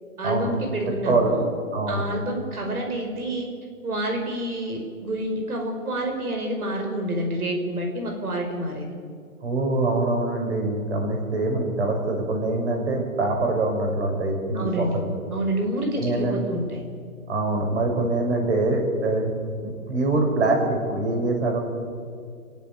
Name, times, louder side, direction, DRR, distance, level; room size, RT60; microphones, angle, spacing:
voice 1, 0.2-1.5 1.9-3.5 3.8-8.9 14.5-15.0 15.3-16.8, right 1 dB, 80° right, 2 dB, 5.3 m, -28 dB
voice 2, 0.9-1.4 1.7-2.0 9.4-15.2 16.0-16.3 17.3-19.3 19.6-21.6, right 2 dB, 50° right, 2 dB, 6.2 m, -24 dB
27.5 x 15.5 x 8.8 m, 2.2 s
hypercardioid pair, 165°, 43 cm